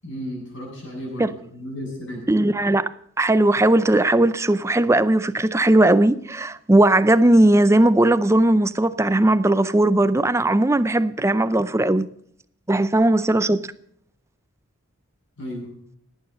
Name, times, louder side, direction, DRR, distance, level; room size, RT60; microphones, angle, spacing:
voice 1, 0.0-2.2 15.4-15.7, equal, 60° left, 7.5 m, -34 dB
voice 2, 2.3-2.9 3.2-12.1 12.7-13.6, right 1 dB, 15° right, 0.4 m, -18 dB
18.5 x 9.1 x 6.5 m
head